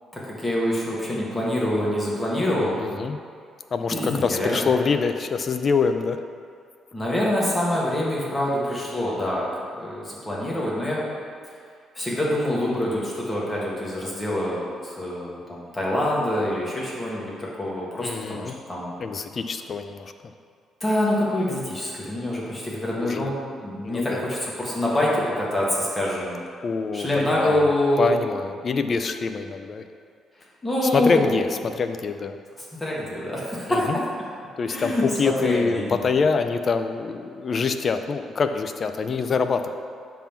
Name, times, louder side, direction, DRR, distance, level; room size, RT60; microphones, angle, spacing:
voice 1, 0.1-2.8 3.9-4.7 6.9-9.5 9.8-11.0 11.9-18.9 20.8-26.4 26.9-28.1 30.6-31.3 32.8-33.9 34.7-36.1, left 1 dB, 15° left, -6 dB, 1.6 m, -25 dB
voice 2, 2.8-3.2 3.7-6.2 18.0-18.5 19.0-20.1 23.0-23.3 23.8-24.2 26.6-27.7 28.0-29.9 30.8-32.4 33.7-34.0 34.6-39.7, left 5 dB, 35° left, 8 dB, 0.4 m, -25 dB
7.3 x 3.6 x 5.8 m, 2.2 s
cardioid pair, 135°, 0 cm